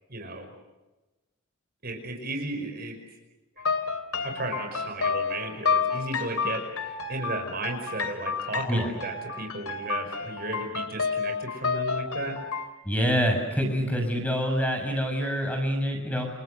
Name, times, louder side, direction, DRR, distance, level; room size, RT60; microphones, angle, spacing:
voice 1, 0.1-0.5 1.8-3.0 3.6-3.7 4.2-12.4, right 2 dB, 45° right, 4 dB, 5.4 m, -34 dB
sound 1, 3.6-12.7, left 5 dB, 85° left, 2.8 m, -30 dB
voice 2, 12.9-16.3, equal, 5° left, 4 dB, 7.0 m, -26 dB
29.5 x 29.5 x 6.8 m, 1.1 s
head